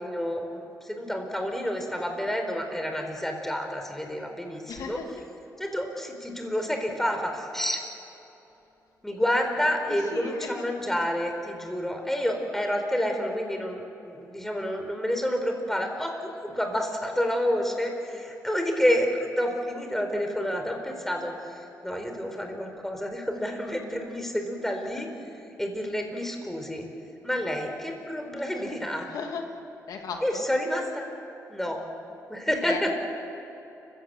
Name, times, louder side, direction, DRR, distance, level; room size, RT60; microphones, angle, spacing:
voice 1, 0.0-5.0 5.6-7.8 9.0-21.3 21.8-25.1 25.6-26.9 27.2-29.1 30.2-31.1 31.5-31.8 32.3-32.9, equal, 5° left, 4 dB, 4.2 m, -29 dB
voice 2, 4.7-5.2 9.9-10.7 29.1-29.5 29.9-30.4 32.6-32.9, left 5 dB, 85° left, 4 dB, 2.0 m, -36 dB
29.5 x 16.5 x 7.7 m, 3.0 s
cardioid pair, 90°, 6 cm